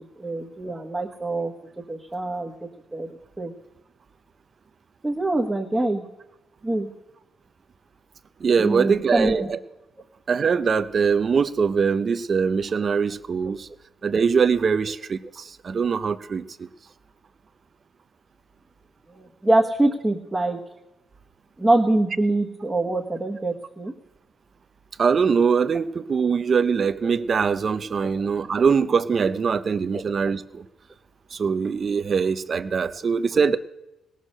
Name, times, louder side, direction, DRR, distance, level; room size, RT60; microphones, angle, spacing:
voice 1, 0.2-1.5 1.9-2.5 2.9-3.5 5.0-6.0 6.6-6.9 8.6-9.5 19.1-20.6 21.6-23.9 29.9-30.0, right 2 dB, 10° right, -1 dB, 1.3 m, -24 dB
voice 2, 8.4-9.6 10.3-13.7 14.0-16.7 25.0-30.6 31.3-33.6, right 5 dB, 35° right, 11 dB, 0.6 m, -22 dB
18.5 x 6.3 x 6.5 m, 0.95 s
cardioid pair, 125°, 0 cm